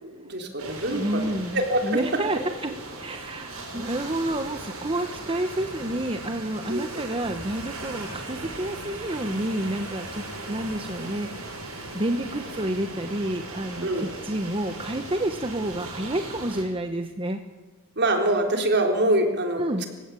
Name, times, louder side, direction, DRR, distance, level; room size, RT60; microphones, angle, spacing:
voice 1, 0.0-2.0 6.7-7.0 13.8-14.1 18.0-19.6, right 1 dB, 50° right, 4 dB, 3.9 m, -25 dB
sound 1, 0.6-16.6, right 2 dB, 85° right, 7.3 m, -38 dB
voice 2, 0.9-2.7 3.0-17.4 19.6-19.8, right 1 dB, 25° right, 6 dB, 1.2 m, -29 dB
29.5 x 16.0 x 8.6 m, 1.2 s
head